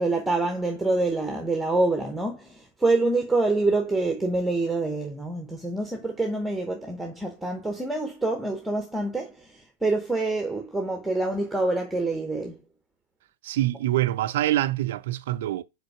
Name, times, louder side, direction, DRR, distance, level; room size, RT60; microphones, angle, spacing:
voice 1, 0.0-12.6, right 2 dB, 5° right, 0.9 m, -26 dB
voice 2, 13.4-15.6, right 14 dB, 55° right, 0.4 m, -25 dB
5.1 x 4.0 x 4.6 m
figure-of-eight pair, 90°, 0 cm